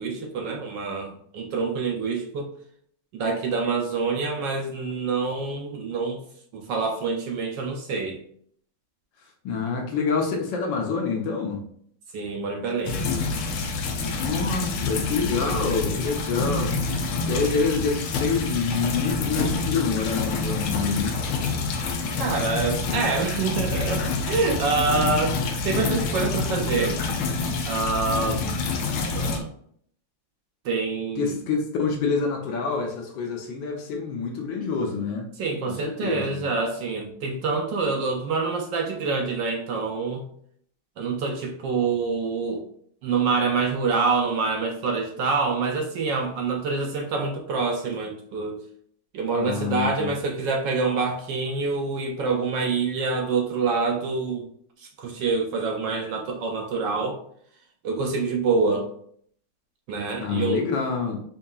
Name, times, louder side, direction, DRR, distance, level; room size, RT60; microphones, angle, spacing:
voice 1, 0.0-2.5 3.1-6.2 6.5-8.2 12.1-13.0 22.2-27.0 27.6-28.4 29.1-29.5 30.6-31.4 35.4-40.2 41.0-42.6 43.0-48.6 49.1-54.4 54.8-57.2 57.8-58.9 59.9-60.6, right 4 dB, 70° right, 2 dB, 1.1 m, -26 dB
voice 2, 9.4-11.6 14.0-16.7 17.2-21.2 28.3-28.6 29.2-29.3 31.2-35.3 35.7-36.4 49.3-50.1 60.2-61.2, left 4 dB, 70° left, 1 dB, 1.3 m, -27 dB
sound 1, 12.9-29.4, left 3 dB, 90° left, 1.5 m, -27 dB
5.2 x 2.8 x 2.3 m, 0.64 s
omnidirectional pair, 2.3 m